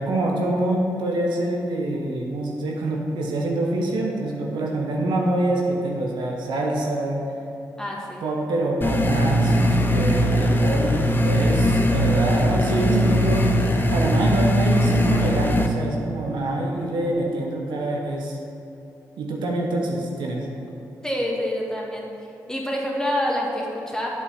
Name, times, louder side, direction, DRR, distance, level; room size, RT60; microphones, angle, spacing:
voice 1, 0.0-7.2 8.2-13.6 13.9-18.4 19.2-20.5, right 1 dB, 75° right, 0 dB, 1.0 m, -25 dB
voice 2, 7.8-8.3 21.0-22.1 22.5-24.1, equal, 10° left, -2 dB, 2.1 m, -26 dB
sound 1, 8.8-15.7, equal, 25° left, 0.9 m, -20 dB
8.2 x 5.5 x 5.7 m, 2.8 s
hypercardioid pair, 40°, 8 cm